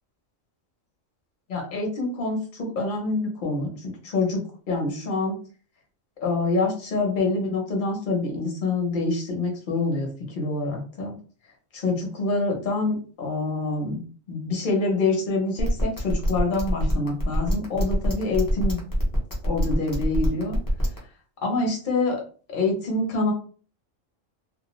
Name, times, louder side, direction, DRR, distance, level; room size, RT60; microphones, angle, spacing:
voice 1, 1.5-5.4 6.2-10.1 10.3-11.1 11.7-14.0 14.3-18.8 19.4-20.6 21.4-22.2 22.5-23.3, left 3 dB, 45° left, 0 dB, 0.9 m, -26 dB
sound 1, 15.6-21.0, equal, 25° left, 0.5 m, -24 dB
2.4 x 2.1 x 3.0 m, 0.40 s
omnidirectional pair, 1.3 m